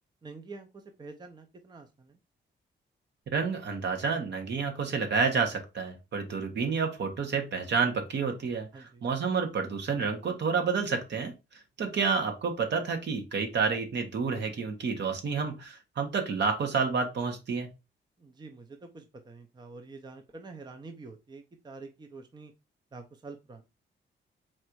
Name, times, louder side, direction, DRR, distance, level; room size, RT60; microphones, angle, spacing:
voice 1, 0.2-2.2 8.7-9.0 18.2-22.5 22.9-23.6, right 3 dB, 20° right, 5 dB, 0.6 m, -47 dB
voice 2, 3.3-11.3 11.8-17.7, right 5 dB, 65° right, 4 dB, 1.3 m, -29 dB
4.2 x 2.6 x 4.5 m, 0.26 s
cardioid pair, 115°, 20 cm